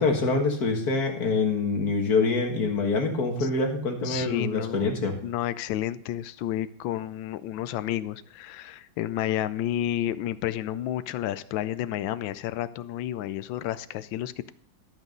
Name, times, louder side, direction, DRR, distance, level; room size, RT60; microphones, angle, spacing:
voice 1, 0.0-5.1, left 3 dB, 55° left, 2 dB, 2.1 m, -25 dB
voice 2, 4.0-4.8 5.2-14.5, left 12 dB, 90° left, 14 dB, 1.3 m, -31 dB
13.0 x 6.1 x 5.2 m, 0.63 s
omnidirectional pair, 2.0 m